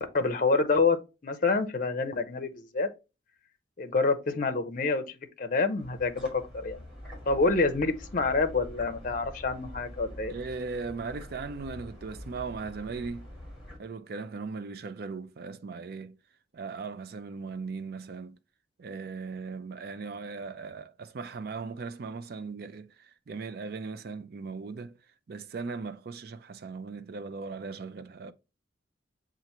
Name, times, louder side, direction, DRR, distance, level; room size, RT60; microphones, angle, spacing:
voice 1, 0.1-2.9 3.8-6.3 6.5-6.8 7.3-10.3, left 3 dB, 45° left, 0.5 m, -27 dB
sound 1, 5.8-13.8, equal, ahead, 1.9 m, -45 dB
voice 2, 10.3-13.3 13.8-16.2 16.5-18.4 18.8-25.0 25.3-28.3, right 4 dB, 55° right, 0.4 m, -38 dB
6.7 x 2.5 x 2.9 m
head